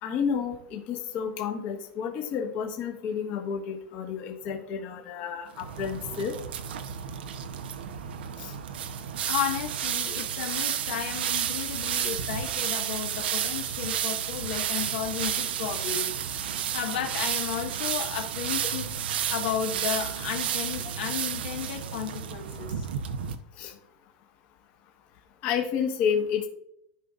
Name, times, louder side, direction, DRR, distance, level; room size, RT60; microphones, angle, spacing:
voice 1, 0.0-6.3 8.4-8.5 23.6-23.7 25.4-26.5, left 7 dB, 35° left, 1 dB, 1.3 m, -30 dB
sound 1, 5.6-23.4, right 9 dB, 85° right, 0.8 m, -31 dB
voice 2, 9.2-16.1 16.7-19.0 19.3-22.9, left 9 dB, 70° left, 3 dB, 1.5 m, -33 dB
15.0 x 5.3 x 2.4 m, 0.75 s
supercardioid pair, 165°, 5 cm